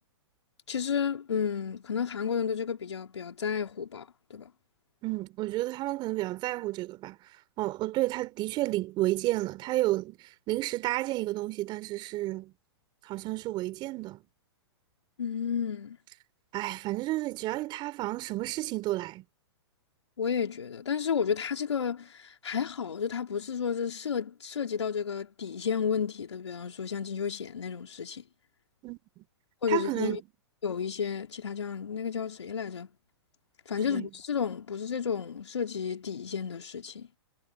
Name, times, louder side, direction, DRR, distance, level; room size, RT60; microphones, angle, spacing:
voice 1, 0.7-4.5 15.2-16.0 20.2-28.2 29.6-30.2 30.6-32.9 33.7-37.1, left 7 dB, 85° left, 3.8 m, -32 dB
voice 2, 5.0-7.2 7.6-10.2 10.5-12.5 13.1-14.2 16.5-19.2 28.8-29.2 29.7-30.2 33.9-34.1, right 17 dB, 30° right, 4.1 m, -31 dB
hypercardioid pair, 130°, 14 cm